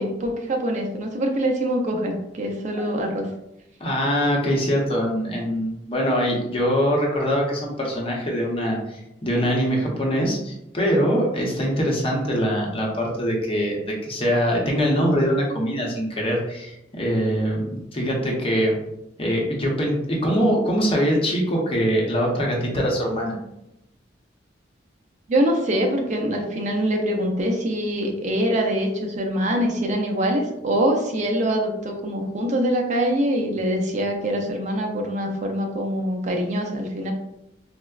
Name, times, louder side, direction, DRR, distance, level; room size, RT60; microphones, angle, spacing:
voice 1, 0.0-3.3 25.3-37.1, equal, 40° right, 2 dB, 0.4 m, -24 dB
voice 2, 3.8-18.7 19.2-23.3, equal, 30° left, -2 dB, 0.7 m, -23 dB
4.2 x 2.0 x 2.3 m, 0.85 s
head